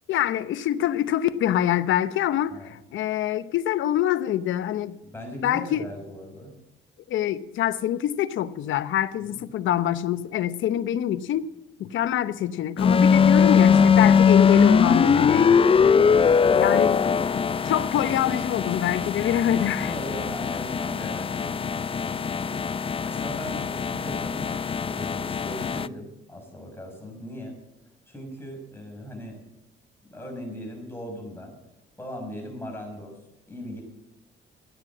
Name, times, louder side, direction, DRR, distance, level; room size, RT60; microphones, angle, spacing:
voice 1, 0.1-5.0 5.4-5.8 7.1-11.5 11.8-15.6 16.5-17.0 17.6-19.9, left 11 dB, 75° left, 0.8 m, -25 dB
voice 2, 5.0-6.6 9.2-9.5 19.8-24.5 24.8-27.5 28.1-29.4 30.1-31.6 32.0-33.2 33.5-33.8, equal, 10° left, 6.0 m, -39 dB
sound 1, 12.8-25.9, left 6 dB, 30° left, 0.4 m, -21 dB
15.0 x 9.6 x 7.4 m
cardioid pair, 90°, 20 cm